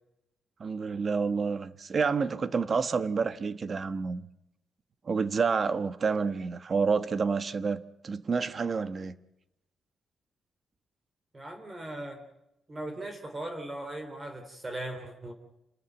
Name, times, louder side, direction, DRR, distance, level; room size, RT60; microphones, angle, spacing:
voice 1, 0.6-4.3 5.0-9.1, right 5 dB, 40° right, 1.2 m, -29 dB
voice 2, 11.3-12.2 12.7-15.3, right 1 dB, 25° right, 3.2 m, -38 dB
28.5 x 13.5 x 9.2 m
wide cardioid pair, 135°, 0 cm